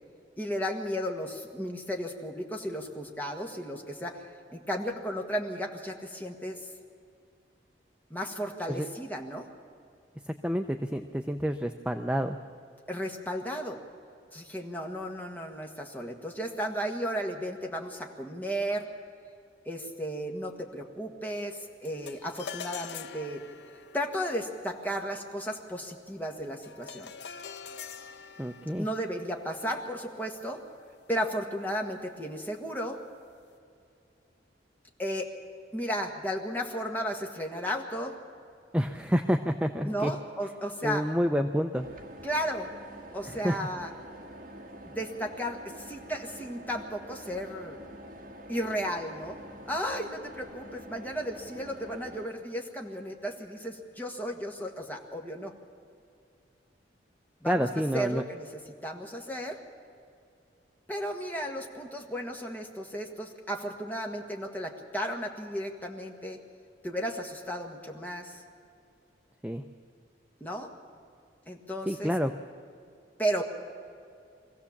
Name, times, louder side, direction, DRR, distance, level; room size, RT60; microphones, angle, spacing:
voice 1, 0.4-4.2 4.5-6.6 8.1-9.5 12.9-13.8 14.3-18.9 19.6-23.4 23.9-27.1 28.8-30.6 31.1-33.0 35.0-35.3 35.7-38.1 39.8-41.0 42.2-42.7 43.1-43.9 44.8-47.8 48.5-49.4 49.7-55.5 57.4-57.7 57.9-58.5 58.8-59.6 60.9-66.4 66.8-68.4 70.4-70.7 71.5-72.1 73.2-73.4, equal, 10° left, 1 dB, 1.6 m, -34 dB
voice 2, 10.2-12.4 28.4-28.9 38.7-40.1 40.8-41.9 43.3-43.7 57.4-58.2 69.4-69.6 71.9-72.3, equal, 5° right, 6 dB, 0.5 m, -28 dB
sound 1, 21.8-31.3, left 7 dB, 70° left, 0.7 m, -46 dB
sound 2, 41.8-52.3, right 1 dB, 50° right, 1.7 m, -46 dB
23.0 x 15.5 x 7.2 m, 2.5 s
head